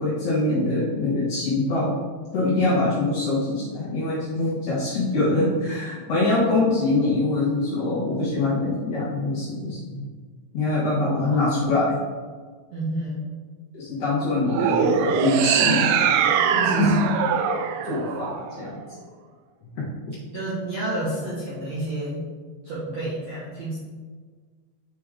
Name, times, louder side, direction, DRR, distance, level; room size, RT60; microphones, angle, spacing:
voice 1, 0.0-2.0 2.3-10.0 10.5-12.0 13.7-15.9 16.6-16.9 17.2-17.6 17.9-18.8, left 2 dB, 75° left, -8 dB, 1.4 m, -24 dB
voice 2, 12.7-13.3 16.5-16.9 20.3-22.3 22.6-23.8, right 2 dB, 70° right, -8 dB, 1.6 m, -29 dB
sound 1, 14.5-18.8, right 7 dB, 90° right, 2.4 m, -22 dB
9.4 x 5.1 x 3.7 m, 1.5 s
omnidirectional pair, 5.4 m